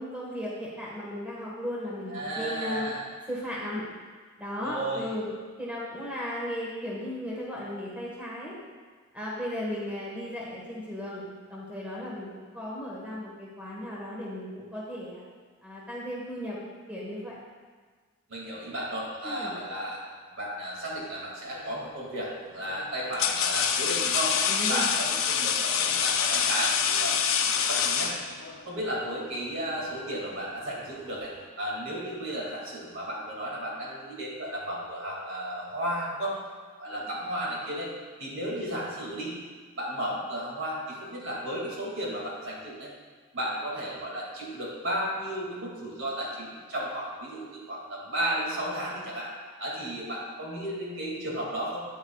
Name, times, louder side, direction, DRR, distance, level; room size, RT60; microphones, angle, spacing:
voice 1, 0.0-2.9 3.3-3.8 4.4-5.3 5.6-8.5 9.1-12.3 12.5-15.2 15.6-16.6 16.9-17.4 19.2-19.6 24.5-24.9 36.9-37.1, equal, 5° right, -6 dB, 1.4 m, -36 dB
voice 2, 2.1-3.1 4.6-5.1 18.3-20.0 20.3-24.3 24.7-27.2 27.7-28.1 28.6-36.4 36.8-37.9 38.2-39.4 39.8-42.9 43.3-49.3 49.6-51.9, right 1 dB, 65° right, -4 dB, 2.3 m, -34 dB
sound 1, 21.6-21.9 22.7-28.6, left 7 dB, 70° left, 0.6 m, -26 dB
10.0 x 9.0 x 2.4 m, 1.5 s
head